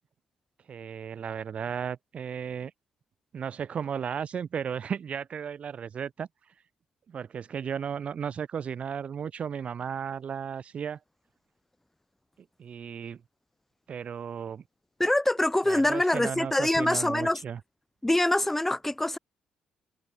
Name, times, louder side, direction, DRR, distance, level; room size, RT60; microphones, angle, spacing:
voice 1, 0.7-2.7 3.3-6.3 7.1-11.0 12.6-13.2 13.9-14.6 15.6-17.6, right 7 dB, 50° right, 0.9 m, -34 dB
voice 2, 15.0-17.4 18.0-19.2, left 1 dB, 10° left, 0.4 m, -24 dB
hypercardioid pair, 45°, 3 cm